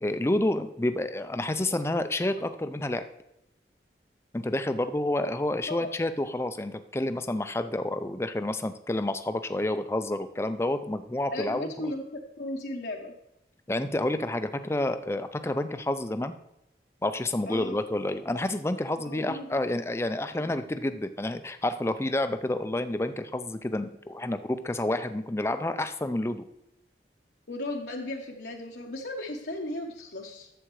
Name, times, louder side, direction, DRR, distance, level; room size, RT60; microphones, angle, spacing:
voice 1, 0.0-3.0 4.3-11.9 13.7-16.3 17.0-26.4, left 1 dB, 15° left, 10 dB, 0.4 m, -29 dB
voice 2, 11.3-12.0 12.4-13.1 17.5-17.8 19.0-19.6 27.5-30.5, left 1 dB, 70° left, -1 dB, 0.9 m, -36 dB
11.0 x 7.7 x 3.1 m, 0.84 s
head